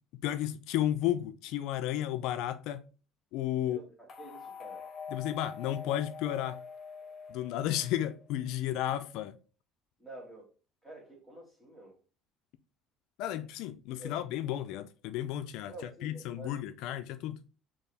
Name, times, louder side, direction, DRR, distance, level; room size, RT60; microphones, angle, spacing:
voice 1, 0.2-2.8 3.3-3.8 5.1-6.6 7.3-9.4 13.2-17.4, left 12 dB, 70° left, 0.4 m, -33 dB
voice 2, 3.6-4.8 10.0-10.5 10.8-11.9 13.9-14.2 15.7-16.5, right 1 dB, 10° right, 1.9 m, -48 dB
sound 1, 4.1-8.3, left 5 dB, 35° left, 1.0 m, -45 dB
4.5 x 2.9 x 3.4 m
cardioid pair, 130°, 0 cm